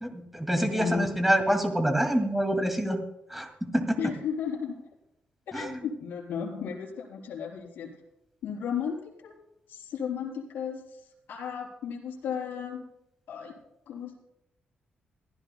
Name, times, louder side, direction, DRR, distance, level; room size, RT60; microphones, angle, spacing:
voice 1, 0.0-3.0 3.3-4.0 5.5-5.7, right 1 dB, 5° right, 5 dB, 2.2 m, -26 dB
voice 2, 0.5-1.2 4.0-4.8 5.5-7.9 8.4-9.0 9.2-9.3 9.7-10.8 11.3-12.8 13.3-13.5 13.9-14.2, left 7 dB, 85° left, -2 dB, 4.0 m, -34 dB
24.5 x 14.5 x 2.2 m, 0.82 s
cardioid pair, 135°, 3 cm